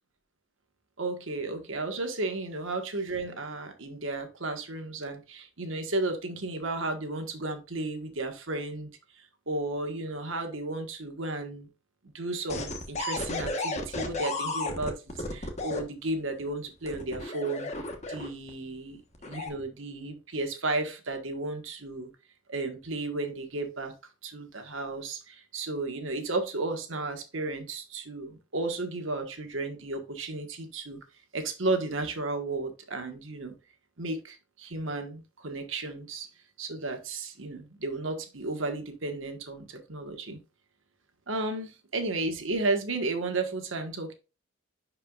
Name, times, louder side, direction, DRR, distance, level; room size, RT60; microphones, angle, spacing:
voice 1, 1.0-11.7 12.1-17.7 18.1-22.1 22.5-23.9 24.2-31.0 31.3-33.5 34.0-36.3 36.6-40.4 41.3-44.1, right 2 dB, 80° right, 1.5 m, -33 dB
sound 1, 12.5-15.8 16.8-18.5 19.1-19.5, left 2 dB, 35° left, 1.2 m, -33 dB
10.5 x 4.8 x 2.4 m
head